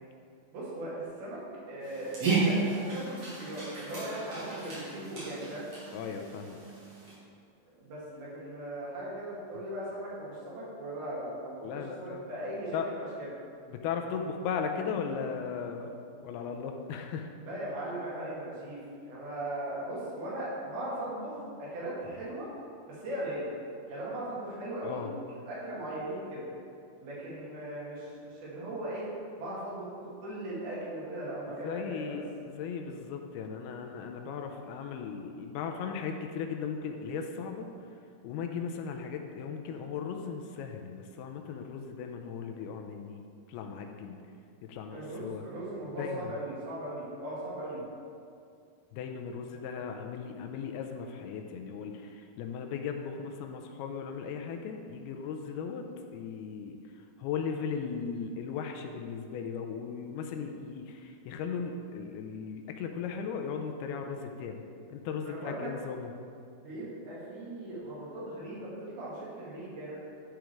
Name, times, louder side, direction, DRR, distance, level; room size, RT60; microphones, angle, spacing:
voice 1, 0.5-0.9 1.2-1.4 1.7-5.6 7.8-13.3 17.4-22.5 22.9-23.5 23.9-25.0 25.5-26.5 27.0-29.0 29.4-29.9 30.2-32.2 44.9-47.8 65.2-65.7 66.6-70.0, right 1 dB, 70° right, -8 dB, 4.1 m, -38 dB
Dog, 1.8-7.1, right 3 dB, 40° right, 3.2 m, -33 dB
voice 2, 5.9-6.6 11.6-12.2 12.7-12.9 13.7-15.9 16.2-17.3 24.8-25.1 31.5-37.7 38.2-43.2 43.5-44.2 44.6-45.5 45.9-46.3 48.9-55.8 56.1-56.8 57.2-64.6 64.9-66.1, left 6 dB, 80° left, 4 dB, 2.5 m, -37 dB
11.5 x 5.1 x 4.6 m, 2.4 s
omnidirectional pair, 4.6 m